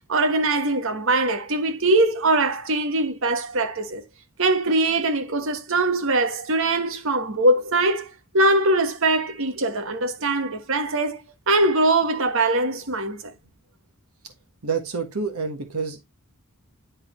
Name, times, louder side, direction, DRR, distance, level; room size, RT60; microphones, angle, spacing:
voice 1, 0.1-4.0 4.4-8.1 8.3-13.3, right 2 dB, 65° right, 1.3 m, -22 dB
voice 2, 14.6-16.0, right 5 dB, 85° right, 1.5 m, -28 dB
11.0 x 4.1 x 3.1 m
head